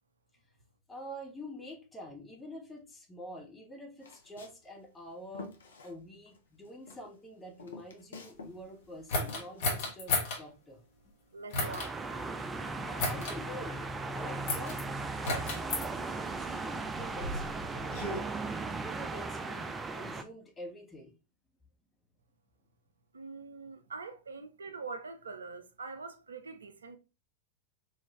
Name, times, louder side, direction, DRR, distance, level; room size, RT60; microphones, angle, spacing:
voice 1, 0.9-5.5 5.8-10.8 12.8-13.8 14.1-14.8 15.1-17.8 18.2-21.1, equal, 15° left, 1.0 m, -47 dB
Walk footsteps, 4.0-6.4 6.6-8.6 8.8-10.4, left 3 dB, 70° left, 0.6 m, -49 dB
sound 1, 9.1-10.4 11.5-11.9 13.0-13.4 14.5-14.8 15.2-15.9 16.8-18.2, left 2 dB, 50° left, 1.0 m, -33 dB
voice 2, 11.3-12.0 23.1-27.0, right 4 dB, 70° right, 0.5 m, -44 dB
sound 2, 11.6-20.2, right 3 dB, 15° right, 0.4 m, -37 dB
3.9 x 2.4 x 3.0 m
figure-of-eight pair, 90°, 0 cm